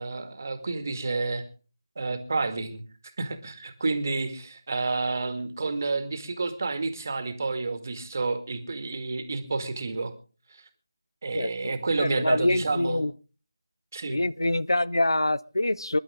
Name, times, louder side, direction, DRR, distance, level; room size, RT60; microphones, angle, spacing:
voice 1, 0.0-1.4 2.0-2.8 3.2-10.1 10.5-10.6 11.2-13.1 13.9-14.2, right 3 dB, 40° right, 2.1 m, -30 dB
voice 2, 11.3-11.7 12.0-13.1 14.1-16.0, left 1 dB, 75° left, 0.7 m, -25 dB
25.5 x 11.0 x 3.6 m
figure-of-eight pair, 160°, 2 cm